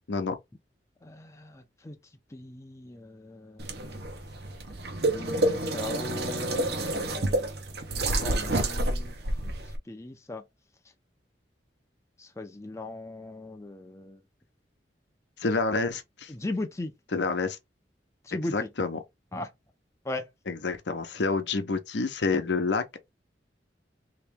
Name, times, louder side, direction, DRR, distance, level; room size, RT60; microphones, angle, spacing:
voice 1, 1.0-2.0 2.3-4.0 4.7-4.8 5.1-7.5 8.2-9.1 9.4-10.4 12.2-14.2 16.3-16.9 18.2-18.7 19.3-19.5 20.0-20.3, left 2 dB, 15° left, 0.5 m, -38 dB
sound 1, 3.6-9.8, right 1 dB, 60° right, 0.8 m, -29 dB
voice 2, 15.4-16.3 17.1-17.6 18.5-19.0 20.5-22.8, left 4 dB, 75° left, 0.7 m, -28 dB
3.0 x 2.9 x 3.4 m
head